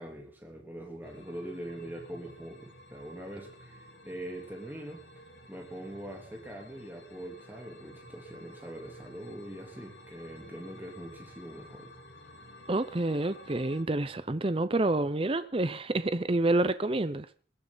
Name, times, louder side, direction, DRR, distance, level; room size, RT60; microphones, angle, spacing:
voice 1, 0.0-5.0 5.5-11.9, right 1 dB, 10° right, 3.3 m, -43 dB
sound 1, 1.0-13.8, left 1 dB, 60° left, 3.4 m, -52 dB
voice 2, 12.7-17.3, right 2 dB, 30° right, 0.7 m, -28 dB
21.5 x 13.5 x 4.0 m
head